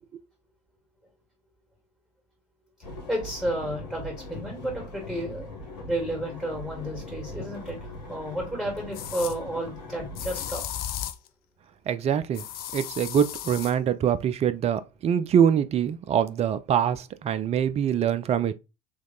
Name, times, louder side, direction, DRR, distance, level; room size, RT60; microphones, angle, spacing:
sound 1, 2.8-10.5, left 1 dB, 80° left, 1.3 m, -40 dB
voice 1, 3.1-5.5 5.9-7.8 8.1-10.6, right 1 dB, 5° right, 2.5 m, -31 dB
sound 2, 7.8-7.9 8.9-9.4 10.1-11.3 12.3-13.7, left 11 dB, 50° left, 0.5 m, -35 dB
voice 2, 11.9-12.4 12.7-18.5, right 8 dB, 30° right, 0.5 m, -24 dB
3.4 x 3.1 x 3.8 m
hypercardioid pair, 70°, 21 cm